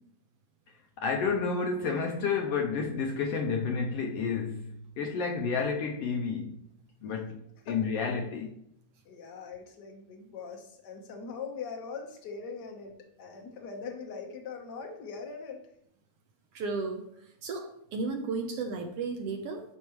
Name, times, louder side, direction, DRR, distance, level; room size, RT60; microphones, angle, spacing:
voice 1, 1.0-6.6 7.0-8.6, left 5 dB, 80° left, 1.4 m, -30 dB
voice 2, 9.0-15.6, left 5 dB, 60° left, 1.1 m, -41 dB
voice 3, 16.5-17.0 17.4-19.6, right 4 dB, 70° right, 1.5 m, -34 dB
12.0 x 4.6 x 3.1 m
omnidirectional pair, 3.4 m